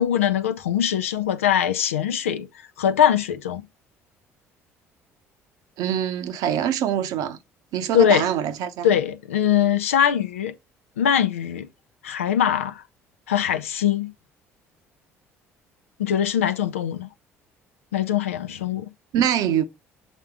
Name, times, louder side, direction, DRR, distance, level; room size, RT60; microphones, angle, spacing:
voice 1, 0.0-2.5 2.8-3.6 7.9-8.3 8.8-10.5 11.0-11.7 12.0-12.8 13.3-14.1 16.0-17.1 17.9-18.9, left 9 dB, 75° left, 0.6 m, -22 dB
voice 2, 5.8-7.4 7.7-8.9 19.1-19.6, right 10 dB, 60° right, 0.8 m, -24 dB
7.3 x 3.7 x 3.5 m
figure-of-eight pair, 55°, 7 cm